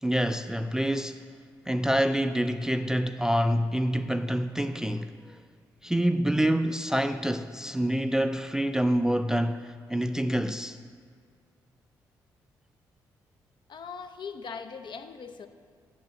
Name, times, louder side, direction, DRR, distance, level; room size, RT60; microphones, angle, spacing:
voice 1, 0.0-1.2 1.7-5.4 5.8-10.8, equal, 5° right, 0.3 m, -27 dB
voice 2, 13.7-15.5, left 5 dB, 50° left, 0.6 m, -40 dB
8.4 x 4.6 x 6.9 m
hypercardioid pair, 40°, 10 cm